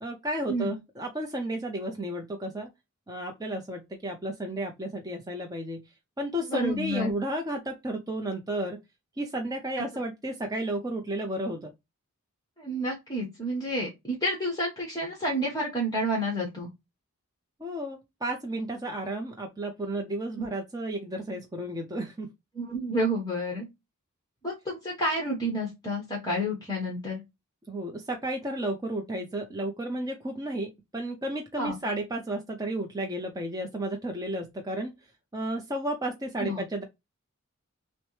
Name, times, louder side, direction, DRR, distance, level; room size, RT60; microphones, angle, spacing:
voice 1, 0.0-2.7 3.1-5.8 6.2-8.8 9.2-11.7 17.6-22.3 27.7-34.9 35.3-36.8, right 1 dB, 15° right, 0.6 m, -32 dB
voice 2, 6.5-7.1 12.6-16.7 20.4-20.5 22.5-23.7 24.4-27.2 31.6-31.8 36.4-36.6, equal, 15° left, 1.2 m, -30 dB
6.2 x 2.1 x 3.1 m
head